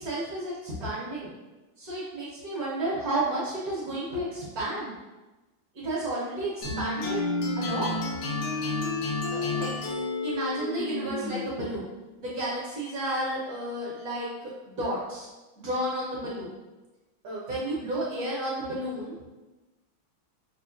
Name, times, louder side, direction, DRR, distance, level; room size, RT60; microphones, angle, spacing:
voice 1, 0.0-1.3 1.8-4.9 5.7-7.2 7.6-7.9 9.3-9.7 10.2-11.9 12.2-15.3 15.6-16.5 17.2-19.2, right 1 dB, 60° right, -7 dB, 1.1 m, -32 dB
sound 1, 6.6-11.7, left 3 dB, 90° left, 1.5 m, -30 dB
5.5 x 2.3 x 2.4 m, 1.1 s
omnidirectional pair, 2.2 m